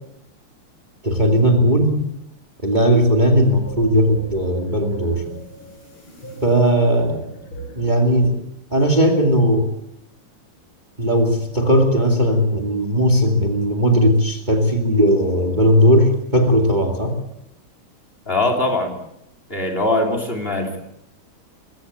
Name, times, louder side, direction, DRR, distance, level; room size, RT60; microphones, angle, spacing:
voice 1, 1.0-1.9 2.6-5.2 6.4-7.3 7.8-8.4 8.7-9.7 11.0-17.2, equal, 20° right, 3 dB, 2.4 m, -17 dB
sound 1, 3.5-8.0, right 1 dB, 75° left, 7.7 m, -38 dB
voice 2, 18.3-18.9 19.5-20.8, left 2 dB, 25° left, 5 dB, 3.6 m, -21 dB
22.5 x 16.0 x 8.5 m, 0.81 s
omnidirectional pair, 2.3 m